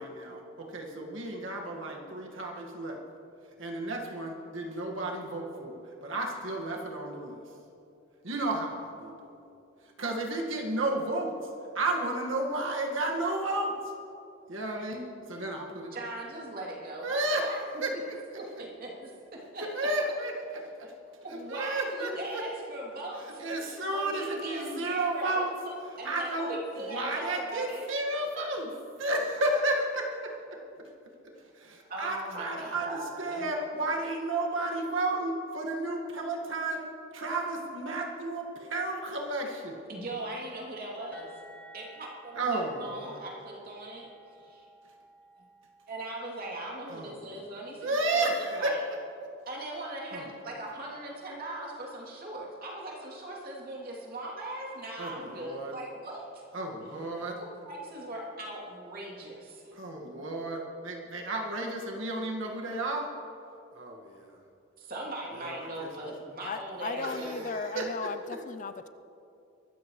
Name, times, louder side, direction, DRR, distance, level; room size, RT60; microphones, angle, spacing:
voice 1, 0.0-3.0 3.6-7.4 8.2-9.4 10.0-11.3 11.8-13.7 14.5-16.0 17.0-18.4 19.6-20.9 21.3-22.4 23.4-25.5 26.0-28.7 29.0-30.6 31.2-36.8 37.1-39.8 42.3-43.2 46.9-47.4 47.8-48.8 50.1-50.3 55.0-55.7 56.5-57.4 59.7-63.1 63.7-64.4 65.3-65.9 67.0-68.1, right 2 dB, 70° right, 0 dB, 1.8 m, -32 dB
voice 2, 15.9-17.6 17.9-18.0 18.3-19.7 20.8-20.9 21.2-27.9 31.9-33.5 39.9-41.3 41.7-44.1 44.4-44.6 45.9-48.8 49.5-56.4 57.4-59.7 64.8-67.4, right 1 dB, 45° right, -3 dB, 2.9 m, -40 dB
sound 1, 41.1-46.7, equal, 10° left, 2.1 m, -55 dB
voice 3, 66.4-68.9, left 4 dB, 40° left, 11 dB, 0.4 m, -36 dB
23.0 x 13.5 x 3.2 m, 2.7 s
head